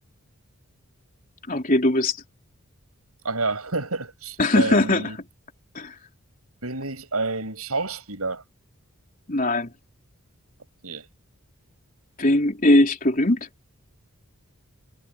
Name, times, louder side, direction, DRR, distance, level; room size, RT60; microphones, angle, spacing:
voice 1, 1.5-2.2 4.4-5.1 5.7-5.9 9.3-9.7 12.2-13.4, left 1 dB, 40° left, 4.0 m, -20 dB
voice 2, 3.2-5.2 6.6-8.4 10.8-11.1, right 3 dB, 80° right, 7.4 m, -29 dB
head